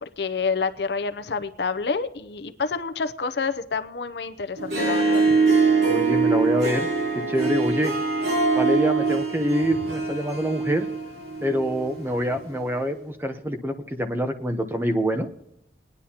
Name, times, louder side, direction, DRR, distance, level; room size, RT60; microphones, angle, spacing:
voice 1, 0.0-5.2, left 4 dB, 70° left, 10 dB, 0.6 m, -28 dB
Harp, 4.6-12.0, right 4 dB, 70° right, 3.4 m, -23 dB
voice 2, 5.9-6.9 7.3-7.9 8.5-10.9 11.4-15.3, equal, 10° right, 6 dB, 0.8 m, -26 dB
21.0 x 10.0 x 2.9 m, 0.80 s
head